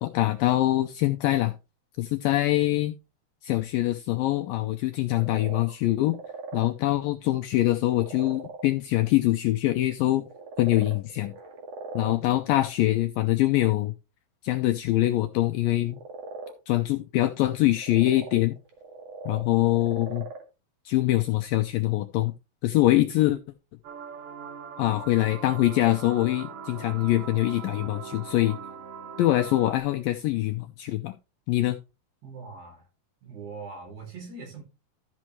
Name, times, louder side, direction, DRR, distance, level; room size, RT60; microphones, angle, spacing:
voice 1, 0.0-1.5 2.0-2.9 3.4-6.2 6.5-10.2 10.6-11.3 12.0-13.9 14.4-16.0 16.7-18.6 19.3-20.3 20.9-22.3 22.6-23.4 24.8-28.6 29.2-31.1 31.5-31.8, left 16 dB, 90° left, 2.0 m, -24 dB
sound 1, 5.0-6.7 7.3-7.4 7.8-8.7 10.0-12.2 15.8-16.5 17.6-20.4, right 4 dB, 45° right, 2.7 m, -40 dB
voice 2, 12.0-12.4 32.2-32.9 33.2-34.6, right 4 dB, 85° right, 6.0 m, -42 dB
sound 2, 23.8-29.8, right 6 dB, 65° right, 2.5 m, -41 dB
13.5 x 6.2 x 3.1 m
omnidirectional pair, 4.7 m